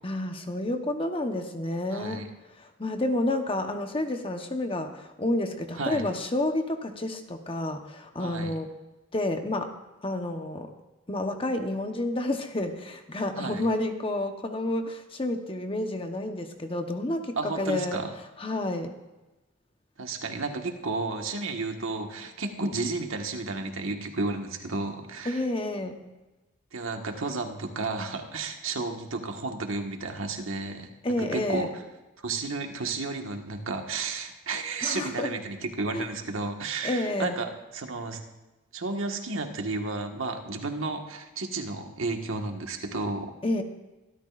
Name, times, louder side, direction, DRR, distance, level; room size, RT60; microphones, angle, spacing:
voice 1, 0.0-2.2 2.6-8.7 9.1-9.7 10.0-10.7 11.1-18.0 18.4-18.9 25.2-26.0 31.0-31.7 34.8-35.3 35.9-36.1 36.8-37.4 43.4-43.6, left 1 dB, 25° left, 5 dB, 1.0 m, -30 dB
voice 2, 1.9-2.3 5.8-6.0 8.2-8.5 13.4-13.6 17.4-18.1 20.0-25.4 26.7-30.9 31.2-31.7 32.2-38.2 38.7-43.3, right 3 dB, 75° right, 4 dB, 1.6 m, -32 dB
24.5 x 12.5 x 2.5 m, 1.1 s
head